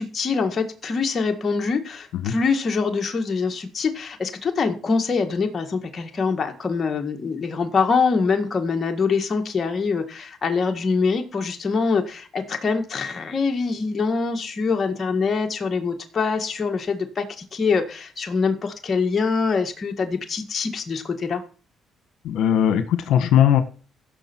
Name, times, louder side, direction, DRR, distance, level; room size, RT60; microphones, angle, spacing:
voice 1, 0.0-21.4, left 4 dB, 40° left, 4 dB, 1.8 m, -24 dB
voice 2, 22.2-23.6, left 10 dB, 80° left, 9 dB, 1.3 m, -18 dB
16.0 x 6.6 x 4.5 m, 0.39 s
cardioid pair, 80°, 0 cm